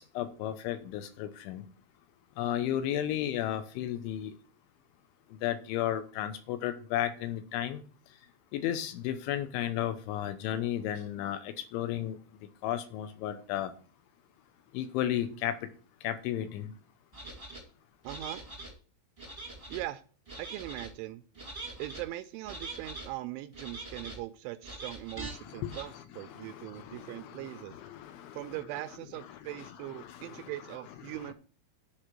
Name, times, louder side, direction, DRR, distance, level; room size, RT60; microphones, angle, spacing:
voice 1, 0.0-1.6 2.4-4.3 5.4-7.8 8.5-12.2 12.6-13.7 14.7-15.6 16.0-16.7 25.2-28.6 29.2-31.3, left 11 dB, 80° left, 3.1 m, -34 dB
sound 1, 17.1-17.6 18.0-18.7 19.2-19.8 20.3-20.9 21.3-22.0 22.4-23.1 23.5-24.2 24.6-25.3 25.7-25.8, right 2 dB, 15° right, 1.0 m, -43 dB
voice 2, 18.0-18.4 19.7-20.0 20.4-21.2 21.8-27.7 28.3-31.3, right 16 dB, 85° right, 2.8 m, -40 dB
9.7 x 5.0 x 7.4 m
omnidirectional pair, 5.7 m